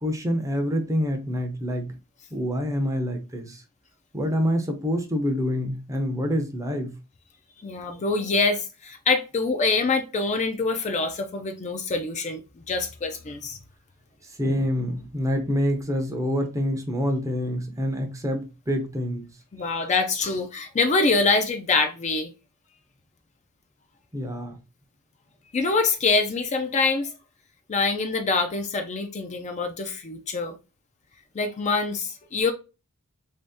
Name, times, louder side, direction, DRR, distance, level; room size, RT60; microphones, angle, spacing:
voice 1, 0.0-2.0 2.3-3.6 4.1-6.9 14.4-19.3 24.1-24.6, equal, 15° right, 0.6 m, -26 dB
voice 2, 7.6-12.4 12.7-13.6 19.5-22.3 25.5-27.1 27.7-30.6 31.3-32.5, left 3 dB, 35° left, 0.5 m, -25 dB
3.0 x 2.7 x 3.4 m
head